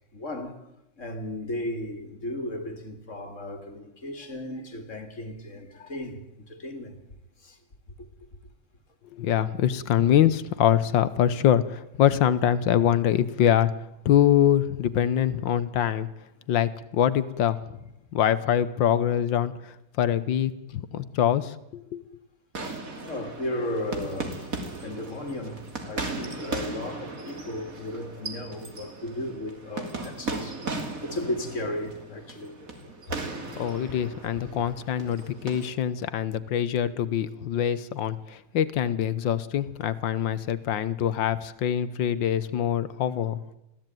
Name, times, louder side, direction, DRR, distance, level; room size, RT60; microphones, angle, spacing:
voice 1, 0.1-0.6 1.0-7.0 7.4-7.6 8.0-8.1 23.1-24.5 24.8-32.6 33.1-33.2 35.2-35.3, left 1 dB, 40° left, 2.8 m, -35 dB
voice 2, 9.1-13.7 14.0-16.1 16.5-17.6 18.1-22.0 33.6-43.4, left 10 dB, 75° left, 1.7 m, -24 dB
sound 1, 22.5-35.7, right 3 dB, 45° right, 3.0 m, -37 dB
21.5 x 15.0 x 9.2 m
omnidirectional pair, 2.0 m